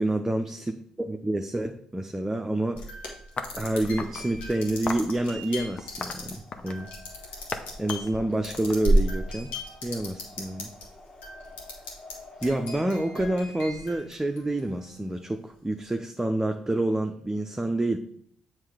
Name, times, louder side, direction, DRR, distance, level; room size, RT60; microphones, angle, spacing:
voice 1, 0.0-2.8 3.5-6.9 7.8-9.5 9.8-10.7 12.4-18.0, right 1 dB, 15° right, 4 dB, 0.6 m, -28 dB
sound 1, 2.7-10.9 11.2-12.1 12.4-14.8, right 1 dB, 80° left, 1.6 m, -32 dB
sound 2, 3.4-4.3 4.9-5.1 5.8-6.9 7.5-7.6 7.9-9.3, left 4 dB, 45° left, 0.7 m, -36 dB
sound 3, 3.9-13.4, left 2 dB, 25° left, 1.9 m, -50 dB
7.3 x 3.2 x 5.0 m, 0.63 s
hypercardioid pair, 50°, 3 cm